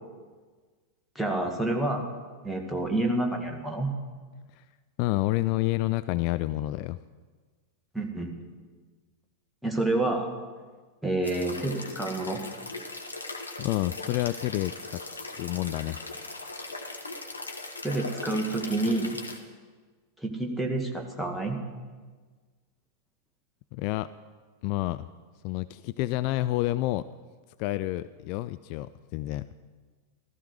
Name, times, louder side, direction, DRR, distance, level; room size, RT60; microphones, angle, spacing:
voice 1, 1.2-2.1 2.4-3.9 7.9-8.4 9.6-10.3 11.0-12.4 17.8-19.2 20.2-21.6, right 2 dB, ahead, 1 dB, 2.0 m, -28 dB
voice 2, 5.0-7.0 13.6-15.0 15.4-16.0 23.7-24.1 24.6-25.1 25.4-27.0 27.6-29.5, left 17 dB, 45° left, 14 dB, 0.3 m, -29 dB
sound 1, 11.2-19.4, left 3 dB, 80° left, 1.4 m, -39 dB
15.0 x 14.0 x 4.8 m, 1.4 s
figure-of-eight pair, 90°, 0 cm